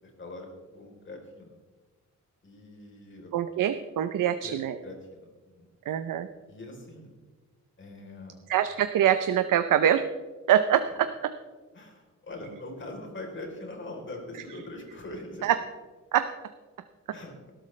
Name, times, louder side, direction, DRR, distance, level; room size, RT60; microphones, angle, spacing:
voice 1, 0.0-0.5 0.7-1.6 2.4-3.3 4.4-4.6 4.8-5.7 6.5-7.1 7.8-8.4 11.7-15.6 17.1-17.3, left 2 dB, 40° left, 1 dB, 3.7 m, -42 dB
voice 2, 3.3-4.8 5.9-6.3 8.5-10.0 10.5-11.1 15.4-15.6 16.1-16.3, right 10 dB, 90° right, 10 dB, 0.7 m, -24 dB
19.0 x 12.5 x 3.3 m, 1.4 s
wide cardioid pair, 140°, 31 cm